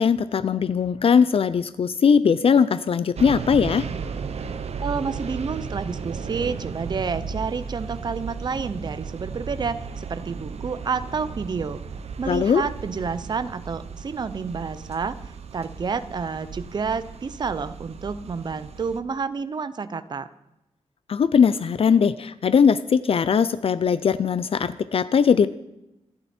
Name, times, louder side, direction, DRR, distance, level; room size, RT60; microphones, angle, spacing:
voice 1, 0.0-3.9 12.3-12.6 21.1-25.5, left 6 dB, 55° left, 15 dB, 0.5 m, -20 dB
sound 1, 3.2-19.0, right 5 dB, 70° right, 1.0 m, -35 dB
voice 2, 4.8-11.8 12.2-20.3, right 5 dB, 40° right, 12 dB, 0.7 m, -29 dB
26.5 x 11.5 x 4.4 m, 0.91 s
wide cardioid pair, 175°, 11 cm